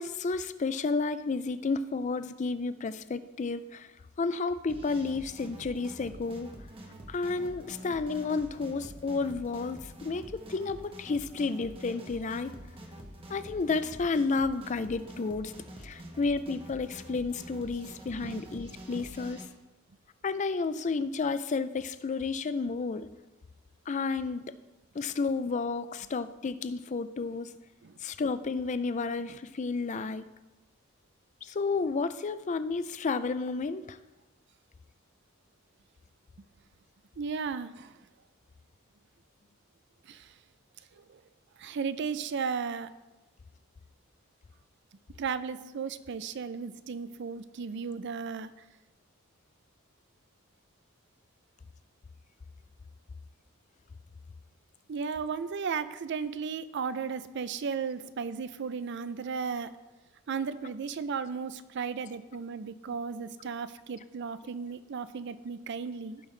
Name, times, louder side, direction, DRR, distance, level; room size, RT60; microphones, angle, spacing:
voice 1, 0.0-3.9 4.2-6.5 7.1-12.5 13.3-15.5 15.8-19.4 20.2-23.1 23.9-24.5 24.9-27.5 28.0-30.2 31.4-34.0, left 4 dB, 35° left, 13 dB, 0.4 m, -31 dB
sound 1, 4.7-19.5, equal, 25° right, 1.1 m, -46 dB
voice 2, 37.2-37.9 40.1-40.3 40.9-41.2 41.6-42.9 45.2-48.5 54.9-59.7 60.3-66.2, right 5 dB, 55° right, 13 dB, 0.4 m, -35 dB
16.0 x 5.6 x 3.2 m, 1.1 s
head